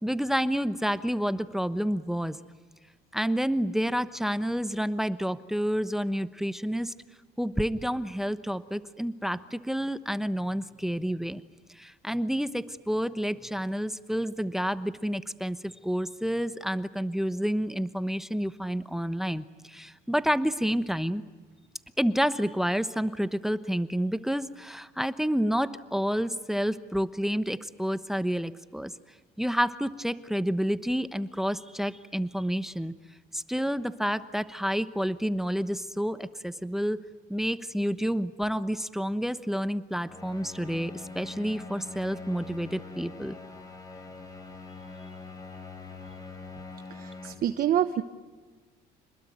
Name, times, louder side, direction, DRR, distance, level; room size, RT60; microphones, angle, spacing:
voice 1, 0.0-2.4 3.1-6.9 7.4-11.4 11.7-21.2 22.0-28.9 29.4-32.9 33.3-37.0 37.3-43.4, equal, ahead, 13 dB, 1.0 m, -29 dB
sound 1, 40.0-47.3, left 3 dB, 20° left, 5.9 m, -43 dB
voice 2, 46.9-48.0, right 10 dB, 60° right, 9 dB, 1.2 m, -27 dB
27.0 x 20.5 x 9.5 m, 1.4 s
cardioid pair, 110°, 17 cm